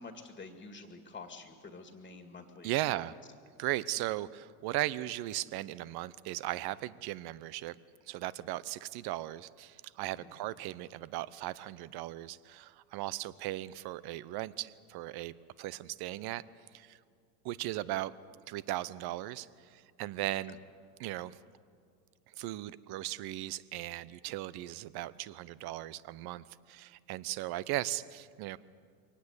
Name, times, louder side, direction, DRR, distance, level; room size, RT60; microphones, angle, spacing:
voice 1, 0.0-2.7 10.1-10.3, left 3 dB, 15° left, 6 dB, 2.1 m, -48 dB
voice 2, 2.6-3.1 3.6-7.8 8.1-16.4 16.7-17.0 17.4-18.1 18.5-20.6 21.0-21.4 22.3-28.6, right 16 dB, 50° right, 18 dB, 0.9 m, -37 dB
23.5 x 18.5 x 8.2 m, 2.2 s
hypercardioid pair, 100°, 50 cm